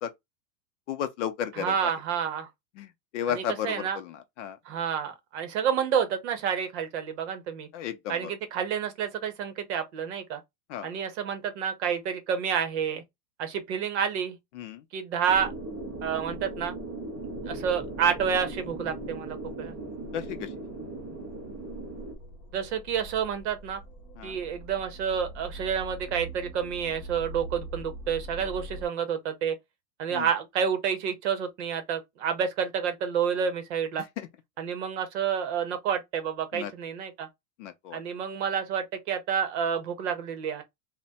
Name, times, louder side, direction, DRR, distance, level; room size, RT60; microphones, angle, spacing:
voice 1, 0.9-1.9 2.8-2.9 3.1-4.6 7.7-8.3 10.7-10.9 14.6-14.8 20.1-20.5 24.2-24.4 30.1-30.3 34.2-34.3 36.5-36.7 37.6-38.0, left 9 dB, 50° left, 0.5 m, -33 dB
voice 2, 1.5-2.5 3.3-4.0 4.7-7.7 8.1-10.4 10.8-13.0 13.4-14.4 14.9-15.5 16.0-16.7 17.5-19.7 22.5-23.8 24.2-29.6 30.0-34.0 34.6-37.3 37.9-40.6, right 7 dB, 45° right, 0.8 m, -29 dB
sound 1, 15.3-22.1, right 2 dB, 15° right, 0.3 m, -38 dB
sound 2, 17.1-28.8, right 1 dB, 30° left, 1.3 m, -44 dB
3.3 x 2.2 x 4.0 m
supercardioid pair, 165°, 48 cm